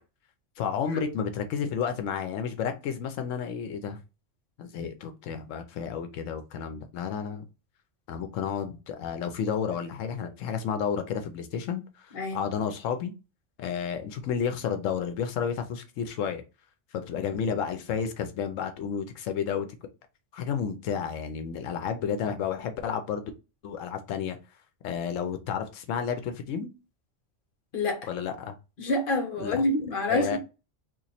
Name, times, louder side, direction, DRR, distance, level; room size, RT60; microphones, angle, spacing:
voice 1, 0.6-4.0 4.6-7.4 8.1-13.1 13.6-16.4 16.9-19.7 20.3-23.2 23.6-24.4 24.8-26.7 28.1-28.6 29.4-29.6 30.1-30.4, left 7 dB, 85° left, 0.9 m, -31 dB
voice 2, 12.1-12.4 27.7-28.1 28.8-30.4, left 2 dB, 50° left, 1.0 m, -27 dB
2.9 x 2.5 x 4.1 m
omnidirectional pair, 1.3 m